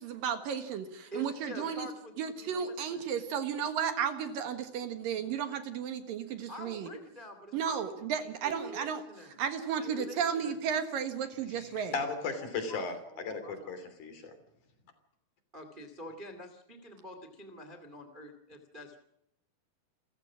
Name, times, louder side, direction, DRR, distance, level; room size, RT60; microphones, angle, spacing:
voice 1, 0.0-1.9 2.2-6.9 7.5-9.0 9.4-11.9, right 7 dB, 60° right, 9 dB, 2.5 m, -33 dB
voice 2, 1.1-3.0 6.5-9.3 9.8-10.6 13.0-13.7 15.5-19.0, equal, 35° right, 6 dB, 0.7 m, -47 dB
voice 3, 11.9-14.1, left 4 dB, 45° left, 9 dB, 4.0 m, -36 dB
29.0 x 15.0 x 6.3 m, 0.82 s
omnidirectional pair, 5.6 m